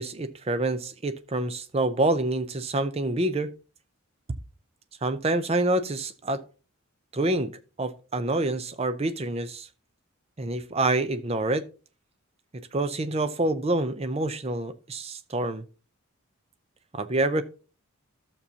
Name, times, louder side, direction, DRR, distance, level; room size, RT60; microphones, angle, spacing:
voice 1, 0.0-3.5 5.0-6.4 7.1-7.5 7.8-9.7 10.4-11.7 12.7-15.6 16.9-17.4, right 2 dB, 30° right, 0.5 m, -27 dB
12.0 x 6.9 x 2.8 m
head